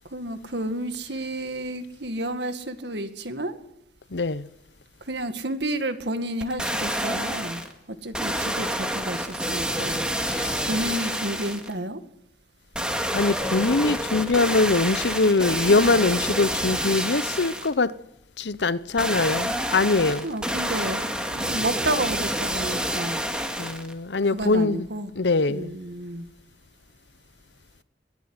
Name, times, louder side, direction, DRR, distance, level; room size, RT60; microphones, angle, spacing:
voice 1, 0.1-3.6 5.1-7.6 7.9-10.0 10.7-12.0 20.2-23.2 24.3-25.1 25.5-26.3, right 1 dB, 75° right, 1.9 m, -31 dB
voice 2, 4.1-4.5 10.3-10.7 13.1-17.9 18.4-20.3 23.6-24.9 25.2-25.8, left 3 dB, 75° left, 0.8 m, -23 dB
sound 1, 6.4-7.7 8.1-11.7 12.7-17.7 19.0-23.9 24.4-24.5, equal, 5° right, 2.1 m, -28 dB
22.0 x 14.5 x 9.6 m
head